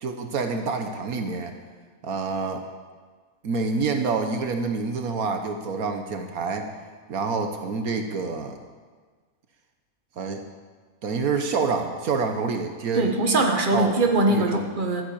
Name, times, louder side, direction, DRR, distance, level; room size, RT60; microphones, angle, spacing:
voice 1, 0.0-1.5 2.0-2.6 3.4-6.7 7.1-8.6 10.2-10.4 11.0-13.1 13.7-14.0 14.3-14.7, right 4 dB, 75° right, 5 dB, 1.5 m, -27 dB
voice 2, 12.9-15.0, right 2 dB, 35° right, 3 dB, 1.6 m, -22 dB
13.0 x 9.5 x 8.7 m, 1.5 s
omnidirectional pair, 1.5 m